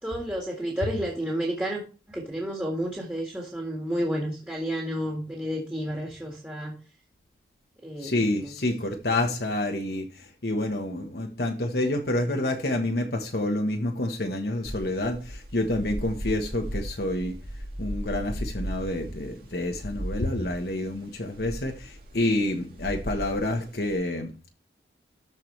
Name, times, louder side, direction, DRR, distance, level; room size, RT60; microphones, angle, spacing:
voice 1, 0.0-1.8 2.1-6.7 7.8-8.1 8.4-8.5 12.4-12.5, equal, 10° right, 1.9 m, -31 dB
voice 2, 8.0-17.4 17.8-24.5, left 1 dB, 60° left, 1.2 m, -28 dB
sound 1, 14.6-23.9, equal, 55° right, 2.0 m, -36 dB
13.5 x 4.7 x 3.2 m
head